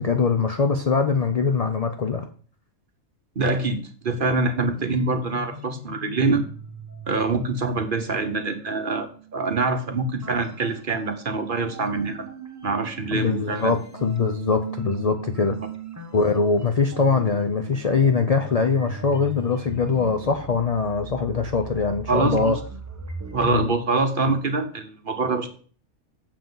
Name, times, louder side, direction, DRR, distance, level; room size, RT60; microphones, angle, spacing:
voice 1, 0.0-2.2 13.1-15.6 16.1-22.6 23.4-23.7, left 4 dB, 75° left, 6 dB, 0.3 m, -22 dB
voice 2, 3.4-6.4 7.1-12.3 12.6-13.7 22.1-22.6 23.3-25.5, right 3 dB, 45° right, 7 dB, 0.9 m, -25 dB
sound 1, 4.7-11.3 11.7-23.7, right 4 dB, 15° right, 0.6 m, -40 dB
7.5 x 6.8 x 3.9 m, 0.43 s
omnidirectional pair, 1.5 m